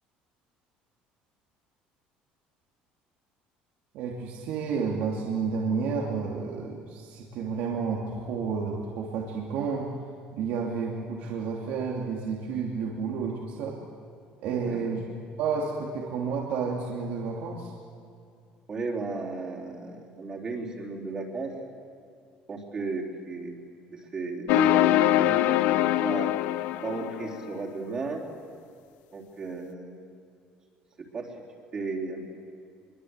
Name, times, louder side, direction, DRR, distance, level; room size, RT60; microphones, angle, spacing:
voice 1, 3.9-10.0 10.3-13.8 14.4-15.0 15.4-17.7, right 5 dB, 60° right, -2 dB, 2.9 m, -31 dB
voice 2, 14.4-14.9 18.7-21.5 22.5-23.7 23.9-26.3 26.8-28.2 29.1-30.2 31.0-31.3 31.7-32.2, right 3 dB, 25° right, -2 dB, 3.8 m, -35 dB
sound 1, 24.5-27.5, left 13 dB, 70° left, 0.8 m, -23 dB
26.0 x 23.5 x 8.2 m, 2.4 s
cardioid pair, 175°, 3 cm